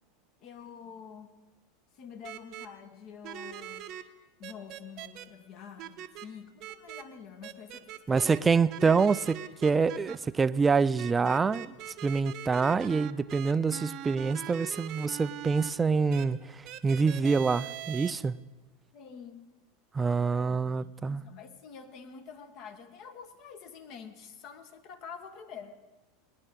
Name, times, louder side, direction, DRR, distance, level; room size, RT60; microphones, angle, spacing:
voice 1, 0.4-1.3 1.9-3.9 4.4-8.5 18.9-19.5 20.2-25.8, left 6 dB, 50° left, 1.3 m, -47 dB
sound 1, 2.2-2.7 3.2-4.0 4.4-5.2 5.8-6.3 6.6-7.0 7.4-8.4 8.7-10.2 11.0-15.7 16.1-16.2 16.6-18.1, right 12 dB, 50° right, 0.7 m, -41 dB
voice 2, 8.1-11.8 12.0-18.4 19.9-21.2, right 5 dB, 20° right, 0.4 m, -26 dB
18.5 x 10.5 x 3.7 m
hypercardioid pair, 90°, 0 cm